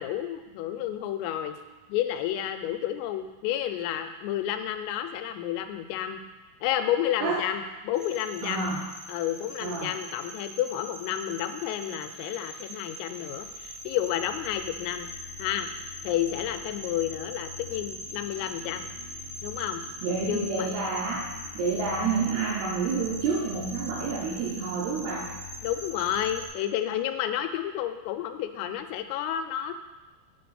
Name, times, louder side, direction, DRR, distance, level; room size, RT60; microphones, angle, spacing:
voice 1, 0.0-1.6 1.9-6.2 6.6-8.7 9.1-15.1 15.4-15.7 16.0-18.9 19.4-19.8 20.3-20.7 25.6-29.7, left 11 dB, 90° left, 8 dB, 3.2 m, -30 dB
sound 1, 7.9-26.5, left 1 dB, 50° right, 0.7 m, -41 dB
voice 2, 8.4-8.9 9.6-9.9 20.0-21.3 21.5-25.3, right 4 dB, 80° right, -4 dB, 2.3 m, -29 dB
8.2 x 3.9 x 6.8 m, 1.1 s
omnidirectional pair, 5.7 m